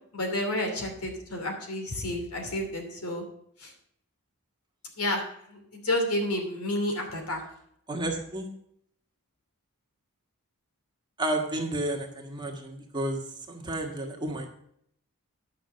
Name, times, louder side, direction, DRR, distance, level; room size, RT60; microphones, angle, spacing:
voice 1, 0.1-3.2 3.6-3.7 5.0-5.2 5.5-7.4, left 1 dB, 85° left, 4 dB, 2.7 m, -30 dB
voice 2, 7.9-8.5 11.2-13.2 13.5-14.5, right 1 dB, 20° right, 2 dB, 1.6 m, -31 dB
10.5 x 6.5 x 6.7 m, 0.70 s
head